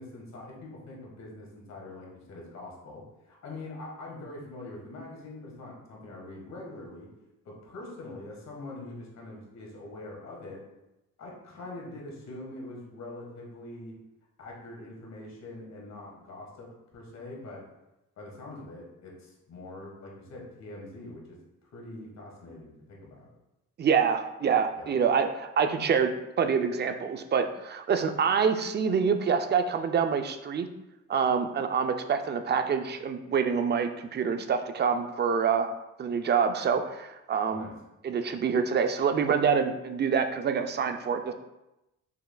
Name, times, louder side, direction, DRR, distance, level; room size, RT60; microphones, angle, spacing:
voice 1, 0.0-7.1 7.4-10.6 11.2-13.9 14.4-17.6 18.2-21.4 21.7-23.3 24.8-24.9 37.5-37.7, left 2 dB, 60° left, -2 dB, 1.4 m, -43 dB
voice 2, 23.8-26.1 26.4-30.7 31.1-35.7 36.0-37.7 38.0-41.3, right 6 dB, 35° right, 7 dB, 0.4 m, -26 dB
5.5 x 3.2 x 2.2 m, 0.94 s
cardioid pair, 90°, 30 cm